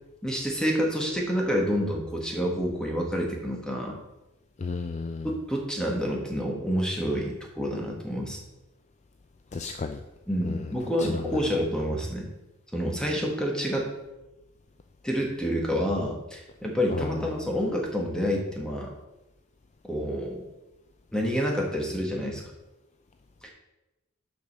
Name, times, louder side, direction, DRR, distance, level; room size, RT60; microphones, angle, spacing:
voice 1, 0.2-4.0 5.2-8.4 10.3-12.3 12.7-13.9 15.0-18.9 19.8-20.4 21.1-22.4 23.4-23.5, equal, 5° left, 0 dB, 1.6 m, -28 dB
voice 2, 4.6-5.3 9.5-10.0 10.4-10.6 11.0-11.1 17.0-17.1, left 4 dB, 30° left, 7 dB, 0.4 m, -33 dB
7.0 x 5.4 x 6.5 m, 1.0 s
head